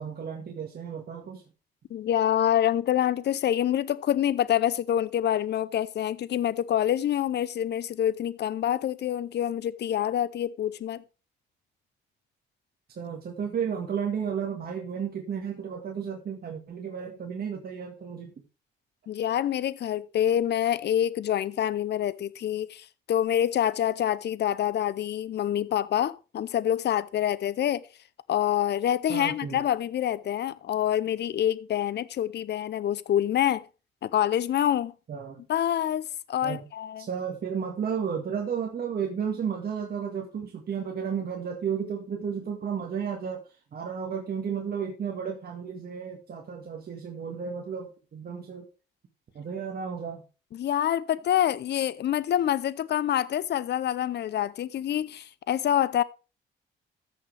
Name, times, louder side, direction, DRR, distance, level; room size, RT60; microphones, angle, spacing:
voice 1, 0.0-1.4 13.0-18.3 29.1-29.6 35.1-35.4 36.4-36.6 37.0-43.4 43.7-48.7 49.4-50.2, right 7 dB, 50° right, 1.8 m, -33 dB
voice 2, 1.9-11.0 19.1-27.8 28.3-33.6 34.0-34.9 35.5-37.1 50.5-56.0, left 10 dB, 60° left, 0.7 m, -26 dB
14.0 x 6.5 x 3.4 m
cardioid pair, 90°, 20 cm